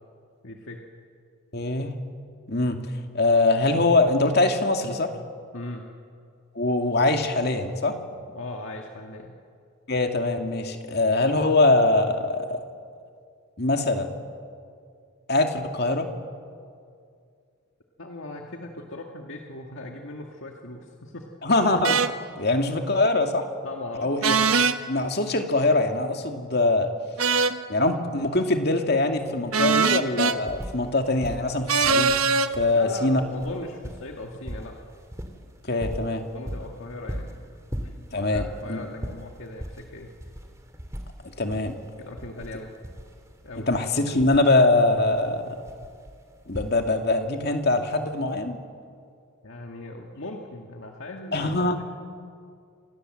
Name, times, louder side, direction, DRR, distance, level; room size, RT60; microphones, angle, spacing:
voice 1, 0.4-0.8 5.5-5.8 8.3-9.4 18.0-21.3 23.6-24.1 32.7-34.8 36.3-37.3 37.8-40.1 42.0-42.7 43.4-43.7 49.4-51.5, left 2 dB, 65° left, 1 dB, 2.0 m, -39 dB
voice 2, 1.5-1.9 2.5-2.8 3.1-5.1 6.6-8.0 9.9-12.6 13.6-14.1 15.3-16.1 21.4-22.0 22.4-23.4 24.0-24.4 24.9-26.9 27.7-32.2 32.6-33.2 35.7-36.2 38.1-38.4 38.7-38.8 41.4-41.8 43.6-45.6 46.5-48.6 51.3-51.8, left 2 dB, 50° left, 4 dB, 2.4 m, -23 dB
sound 1, 21.8-22.1 24.2-24.8 27.2-27.6 29.5-30.4 31.7-32.5, right 5 dB, 90° right, 1.2 m, -21 dB
sound 2, 29.1-29.2 29.5-30.9 31.2-47.2 48.2-48.3, equal, 15° right, 2.3 m, -39 dB
27.5 x 27.0 x 7.8 m, 2.3 s
head